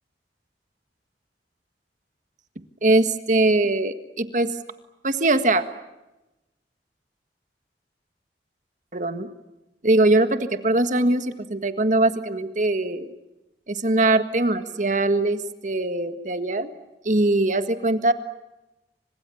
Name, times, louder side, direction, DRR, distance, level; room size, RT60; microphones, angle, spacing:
voice 1, 2.8-4.5 5.0-5.6 8.9-9.3 9.8-13.1 13.7-16.7 17.0-18.1, right 2 dB, 45° right, 10 dB, 1.7 m, -21 dB
29.5 x 26.0 x 7.1 m, 1.0 s
head